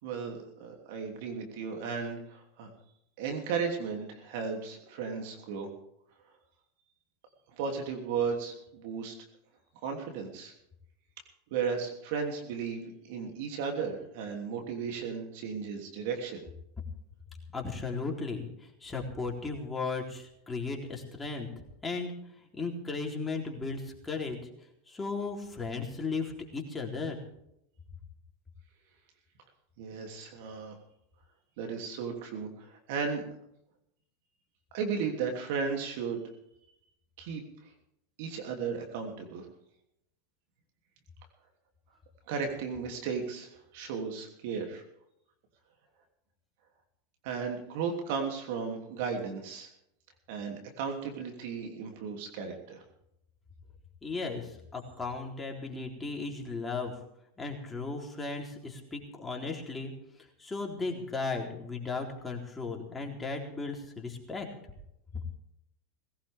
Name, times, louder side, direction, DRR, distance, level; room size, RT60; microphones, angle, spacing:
voice 1, 0.0-2.7 3.2-5.7 7.5-9.1 9.8-10.5 11.5-16.4 29.8-30.8 31.6-33.2 34.7-36.2 37.2-37.4 38.2-39.5 42.3-44.8 47.2-49.7 50.3-52.8, right 6 dB, 65° right, 3 dB, 3.0 m, -35 dB
voice 2, 17.5-21.5 21.8-22.1 22.5-24.4 24.9-27.2 54.0-56.9 57.4-59.9 60.4-64.5, left 4 dB, 15° left, 0 dB, 3.7 m, -36 dB
19.5 x 17.0 x 3.6 m, 0.78 s
hypercardioid pair, 95°, 0 cm